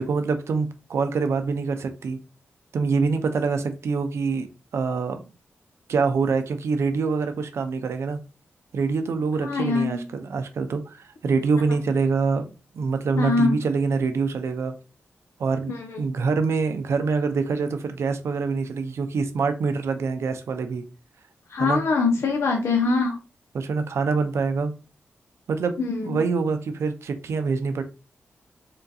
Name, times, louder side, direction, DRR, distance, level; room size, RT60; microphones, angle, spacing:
voice 1, 0.0-2.2 2.7-4.5 4.7-5.2 5.9-8.2 8.7-14.7 15.4-20.8 21.6-21.8 23.5-24.7 25.5-27.8, right 4 dB, 75° right, 0.5 m, -25 dB
voice 2, 9.4-10.0 13.2-13.6 15.7-16.0 21.5-23.2 25.8-26.2, left 4 dB, 75° left, 0.5 m, -23 dB
3.7 x 2.3 x 2.6 m
cardioid pair, 85°, 5 cm